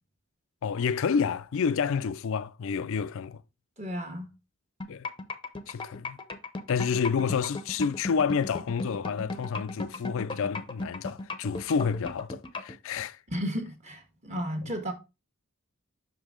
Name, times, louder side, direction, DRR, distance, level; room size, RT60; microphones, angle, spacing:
voice 1, 0.6-3.4 4.9-5.1 5.7-6.2 6.7-13.2, left 6 dB, 60° left, 0.4 m, -29 dB
voice 2, 3.8-4.3 13.3-14.9, equal, 30° right, 1.3 m, -33 dB
sound 1, 4.8-12.7, left 2 dB, 20° left, 0.7 m, -35 dB
6.1 x 5.0 x 3.7 m
head